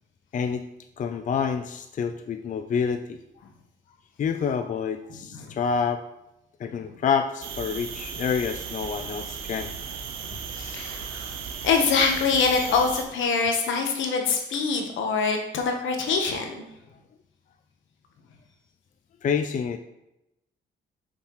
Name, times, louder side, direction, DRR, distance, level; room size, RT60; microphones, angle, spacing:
voice 1, 1.0-3.2 4.2-6.0 6.6-9.7 19.2-19.8, left 6 dB, 40° left, 8 dB, 0.4 m, -27 dB
sound 1, 7.4-13.0, right 6 dB, 80° right, 0.8 m, -36 dB
voice 2, 10.5-11.3 11.6-16.5, left 5 dB, 75° left, 3 dB, 1.2 m, -24 dB
6.4 x 5.8 x 3.1 m, 0.88 s
cardioid pair, 90°, 20 cm